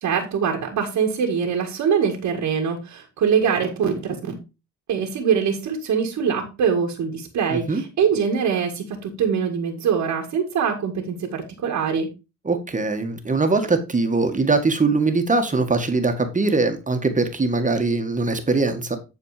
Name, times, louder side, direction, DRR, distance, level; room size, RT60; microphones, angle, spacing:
voice 1, 0.0-4.3 4.9-12.1, right 6 dB, 75° right, 1.9 m, -23 dB
voice 2, 7.5-7.8 12.4-19.0, right 3 dB, 25° right, 1.7 m, -21 dB
10.0 x 4.5 x 4.8 m
cardioid pair, 90°, 30 cm